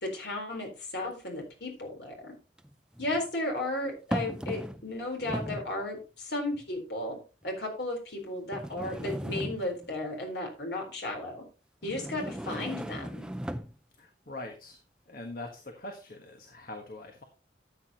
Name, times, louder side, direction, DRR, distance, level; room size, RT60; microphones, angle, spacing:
voice 1, 0.0-2.4 3.0-7.2 7.4-11.4 11.8-13.3, left 1 dB, 65° left, 2 dB, 4.1 m, -34 dB
sound 1, 1.1-1.2 2.6-3.2 4.1-4.9 5.2-5.7 6.5-6.6 7.4-7.5 8.5-9.9 11.8-13.8, equal, 5° right, 0.5 m, -37 dB
voice 2, 14.0-14.8 15.1-17.2, left 2 dB, 50° left, 4 dB, 1.4 m, -43 dB
13.0 x 8.5 x 2.9 m, 0.33 s
head